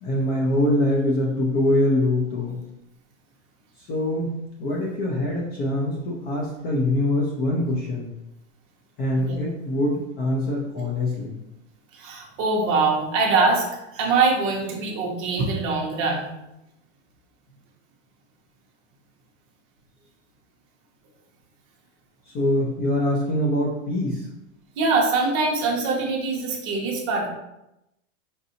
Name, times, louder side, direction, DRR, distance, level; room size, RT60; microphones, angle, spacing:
voice 1, 0.0-2.6 3.8-4.3 4.6-8.1 9.0-11.4 22.3-24.3, left 1 dB, 25° left, -2 dB, 0.5 m, -24 dB
voice 2, 11.9-13.7 13.9-16.3 24.8-27.3, right 3 dB, 35° right, -1 dB, 1.0 m, -23 dB
5.2 x 2.6 x 2.8 m, 0.89 s
supercardioid pair, 145°, 39 cm